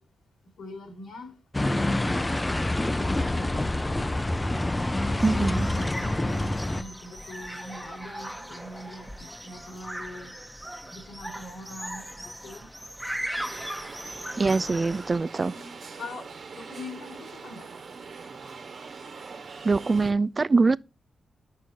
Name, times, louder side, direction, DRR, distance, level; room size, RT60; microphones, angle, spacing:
voice 1, 0.6-2.5 3.0-4.1 5.3-10.3 10.9-12.7 15.3-17.7, left 1 dB, 90° left, 2.4 m, -43 dB
sound 1, 1.5-6.8, left 1 dB, 15° left, 0.6 m, -26 dB
sound 2, 5.2-15.2, equal, 5° right, 1.1 m, -39 dB
voice 2, 5.2-5.7 14.4-15.5 19.6-20.8, right 3 dB, 35° right, 0.3 m, -23 dB
sound 3, 13.3-20.1, right 5 dB, 65° right, 1.4 m, -43 dB
9.3 x 6.2 x 2.8 m
cardioid pair, 75°, 0 cm